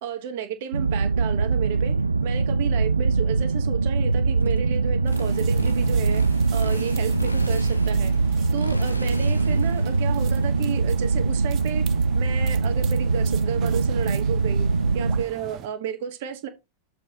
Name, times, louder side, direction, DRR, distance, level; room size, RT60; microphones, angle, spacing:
voice 1, 0.0-2.0 2.2-6.2 6.5-8.1 8.5-14.7 14.9-16.5, right 9 dB, 50° right, 1.8 m, -32 dB
sound 1, 0.7-15.2, right 4 dB, 80° right, 0.4 m, -23 dB
Motorcycle, 4.4-13.0, left 1 dB, 85° left, 0.8 m, -35 dB
sound 2, 5.1-15.7, right 12 dB, 35° right, 0.9 m, -41 dB
7.4 x 4.6 x 5.2 m
figure-of-eight pair, 90°, 0 cm